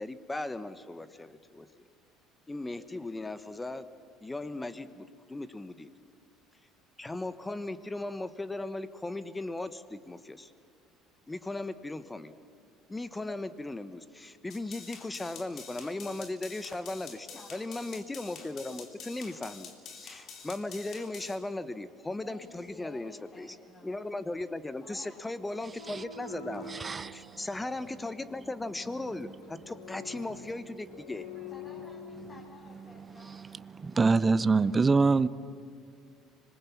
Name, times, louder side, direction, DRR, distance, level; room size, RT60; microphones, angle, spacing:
voice 1, 0.0-1.8 2.5-3.8 4.2-5.9 7.0-10.5 11.3-12.3 12.9-17.2 17.5-23.6 23.8-26.7 27.1-31.3, left 2 dB, 15° left, 13 dB, 1.3 m, -37 dB
sound 1, 14.5-21.3, left 6 dB, 55° left, 3.0 m, -47 dB
voice 2, 16.8-17.6 22.2-24.1 24.8-25.6 31.5-33.5 35.1-35.3, left 3 dB, 35° left, -2 dB, 4.1 m, -53 dB
sound 2, 25.6-32.6, left 5 dB, 80° left, 2.2 m, -47 dB
voice 3, 26.7-27.4 33.8-35.3, right 4 dB, 25° right, 16 dB, 0.7 m, -24 dB
25.5 x 21.0 x 7.3 m, 2.3 s
hypercardioid pair, 65°, 0 cm